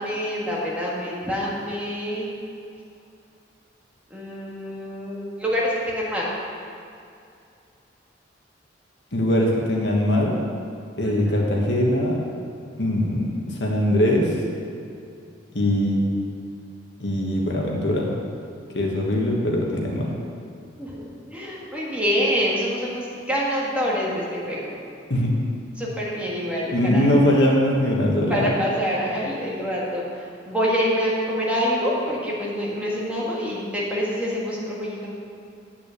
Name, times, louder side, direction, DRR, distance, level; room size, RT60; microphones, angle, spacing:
voice 1, 0.0-2.3 4.1-6.3 11.0-11.4 20.8-21.0 21.3-24.7 25.8-27.0 28.3-35.1, equal, 5° right, -6 dB, 1.8 m, -26 dB
voice 2, 9.1-10.4 11.0-12.2 12.8-14.4 15.5-16.0 17.0-18.1 18.7-20.2 25.1-25.4 26.7-28.5, left 1 dB, 60° left, -1 dB, 1.6 m, -21 dB
8.6 x 6.1 x 8.2 m, 2.4 s
head